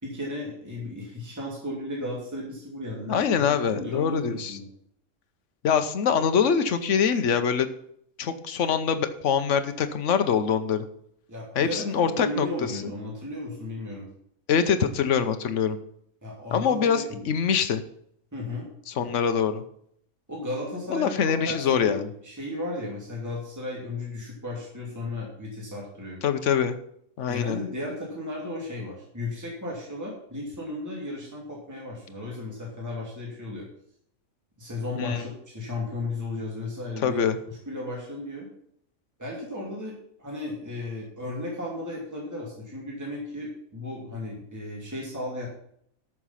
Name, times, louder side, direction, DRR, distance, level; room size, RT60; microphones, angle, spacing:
voice 1, 0.0-4.7 11.3-14.1 16.2-17.3 18.3-18.7 19.0-19.2 20.3-22.0 22.2-26.2 27.3-33.7 34.6-38.5 39.2-45.5, left 2 dB, 10° right, -4 dB, 2.7 m, -35 dB
voice 2, 3.1-4.5 5.6-7.7 8.2-10.8 11.5-12.5 14.5-15.8 16.5-17.8 18.9-19.6 20.9-22.1 26.2-26.8 27.2-27.6 35.0-35.2 37.0-37.4, left 7 dB, 60° left, 9 dB, 1.2 m, -24 dB
13.0 x 6.2 x 5.7 m, 0.68 s
omnidirectional pair, 1.5 m